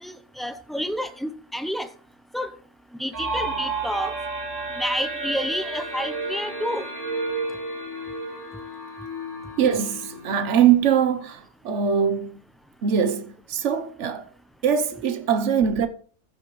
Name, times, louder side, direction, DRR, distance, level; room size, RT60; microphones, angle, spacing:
voice 1, 0.0-1.9 2.3-2.5 3.0-4.1 4.8-6.9, equal, ahead, 0.5 m, -29 dB
sound 1, 3.1-10.8, right 2 dB, 45° right, 3.2 m, -32 dB
voice 2, 9.6-12.4 12.8-14.2 14.6-15.9, right 8 dB, 80° right, 1.2 m, -22 dB
14.5 x 6.8 x 3.1 m
omnidirectional pair, 1.2 m